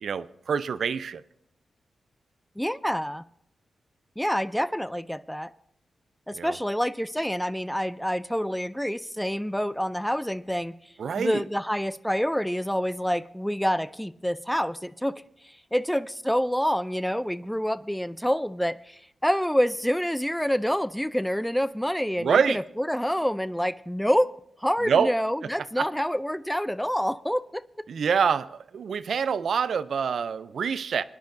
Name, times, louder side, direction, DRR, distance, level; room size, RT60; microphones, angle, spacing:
voice 1, 0.0-1.2 6.3-6.6 11.0-11.4 22.2-22.6 24.8-25.1 25.8-25.9 27.9-31.0, right 6 dB, 75° right, 0.4 m, -26 dB
voice 2, 2.6-3.2 4.2-5.5 6.3-24.3 24.6-27.6, equal, 5° left, 0.4 m, -27 dB
22.0 x 10.5 x 2.6 m
cardioid pair, 50°, 0 cm